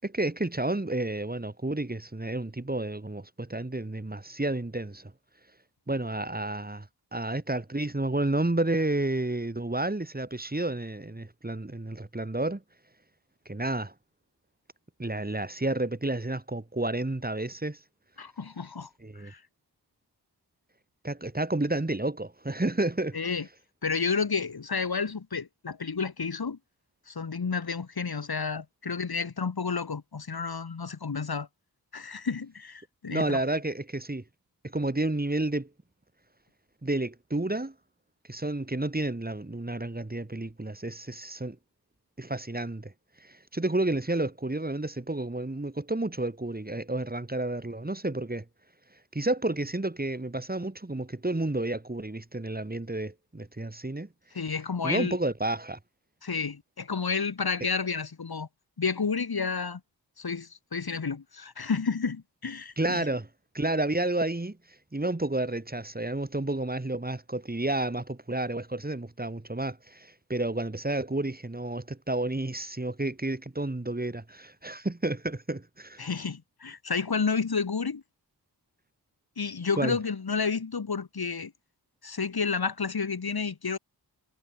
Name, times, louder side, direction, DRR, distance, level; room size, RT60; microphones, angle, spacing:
voice 1, 0.0-5.1 5.9-6.9 7.1-12.6 13.5-13.9 15.0-17.8 19.0-19.3 21.0-23.3 33.1-34.2 34.7-35.7 36.8-37.7 38.3-41.6 42.2-42.9 43.2-48.4 49.1-54.1 54.8-55.8 62.8-63.3 63.5-64.6 64.9-76.1 79.8-80.0, right 2 dB, 20° right, 4.9 m, -30 dB
voice 2, 18.2-18.9 19.1-19.4 23.1-23.5 23.8-26.6 27.1-31.5 31.9-33.4 54.3-55.2 56.2-58.5 58.8-59.8 60.2-63.0 76.0-78.0 79.4-81.5 82.0-83.8, left 5 dB, 65° left, 4.8 m, -31 dB
cardioid pair, 65°, 41 cm